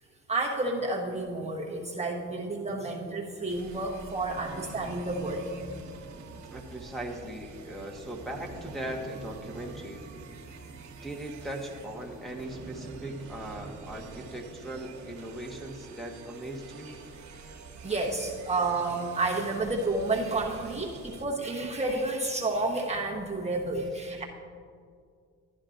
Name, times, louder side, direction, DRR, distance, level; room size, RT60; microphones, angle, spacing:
voice 1, 0.3-5.5 17.8-24.2, right 2 dB, 20° right, -2 dB, 1.0 m, -30 dB
sound 1, 3.5-21.3, right 4 dB, 70° right, 1.2 m, -46 dB
voice 2, 6.5-10.0 11.0-17.0, right 1 dB, ahead, -2 dB, 1.1 m, -39 dB
12.0 x 11.0 x 2.5 m, 2.2 s
cardioid pair, 90°, 30 cm